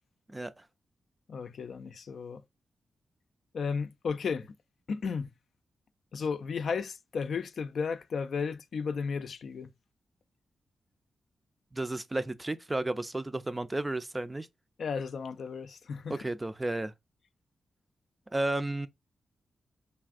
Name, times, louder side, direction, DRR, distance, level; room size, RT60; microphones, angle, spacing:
voice 1, 1.3-2.4 3.5-4.5 4.9-5.3 6.1-9.7 14.8-16.2, left 5 dB, 70° left, 0.3 m, -34 dB
voice 2, 11.7-14.5 16.1-16.9 18.3-18.9, right 2 dB, 20° right, 0.4 m, -32 dB
3.3 x 2.4 x 2.4 m
cardioid pair, 55°, 0 cm